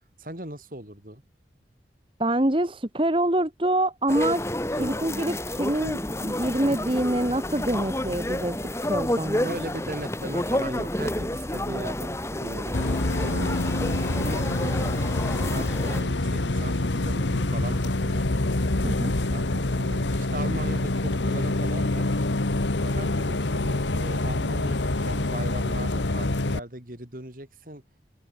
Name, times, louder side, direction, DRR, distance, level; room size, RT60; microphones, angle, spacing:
voice 1, 0.2-1.2 4.8-5.1 9.4-14.9 15.3-18.3 19.3-22.1 22.8-27.8, right 1 dB, 50° right, 4.3 m, -38 dB
voice 2, 2.2-4.4 4.8-9.5 18.8-19.1, right 1 dB, 30° right, 1.4 m, -26 dB
sound 1, 4.1-16.0, left 1 dB, 15° left, 2.6 m, -30 dB
Bus, 12.7-26.6, left 2 dB, 90° left, 1.5 m, -26 dB
open air
head